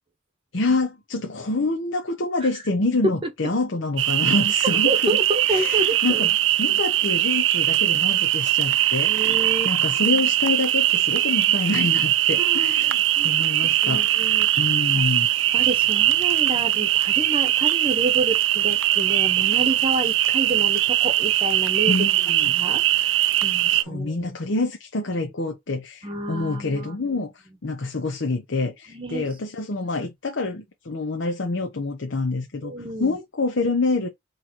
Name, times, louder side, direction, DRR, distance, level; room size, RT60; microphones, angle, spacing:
voice 1, 0.5-5.2 5.5-6.3 6.6-9.4 9.6-14.1 14.6-15.3 21.9-22.5 23.7-27.3 27.6-34.1, left 3 dB, 65° left, 0.8 m, -27 dB
sound 1, 4.0-23.8, right 13 dB, 65° right, 0.4 m, -21 dB
voice 2, 4.8-6.3 9.1-9.7 12.4-15.0 15.5-22.0 22.5-24.3 26.0-27.1 28.9-29.3 32.6-33.2, right 2 dB, 25° right, 0.9 m, -30 dB
3.8 x 3.2 x 4.3 m
head